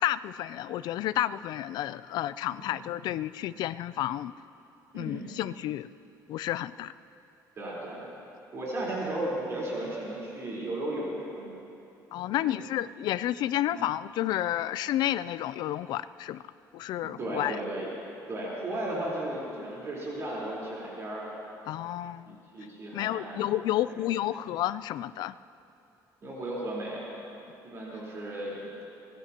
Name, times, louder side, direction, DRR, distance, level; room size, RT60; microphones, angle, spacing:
voice 1, 0.0-4.3 4.9-5.9 6.3-6.9 12.1-16.4 16.7-17.6 21.7-22.4 22.9-25.3, left 13 dB, 70° left, 16 dB, 0.4 m, -31 dB
voice 2, 4.9-5.3 7.6-8.0 8.5-11.5 13.7-13.8 17.0-17.9 18.3-21.3 22.3-23.4 23.9-24.0 26.2-28.8, right 1 dB, 40° right, -6 dB, 4.2 m, -35 dB
24.5 x 19.0 x 3.0 m, 2.8 s
cardioid pair, 135°, 7 cm